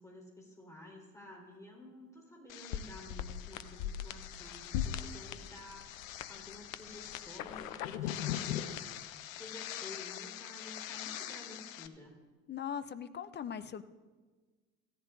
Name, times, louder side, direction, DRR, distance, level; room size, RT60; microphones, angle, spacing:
voice 1, 0.0-8.9 9.3-12.2, left 1 dB, 10° left, -2 dB, 4.1 m, -52 dB
sound 1, 2.5-11.9, left 10 dB, 70° left, 0.6 m, -40 dB
voice 2, 12.5-13.8, left 8 dB, 25° left, 12 dB, 0.5 m, -40 dB
16.0 x 10.5 x 2.6 m, 1.4 s
figure-of-eight pair, 55°, 41 cm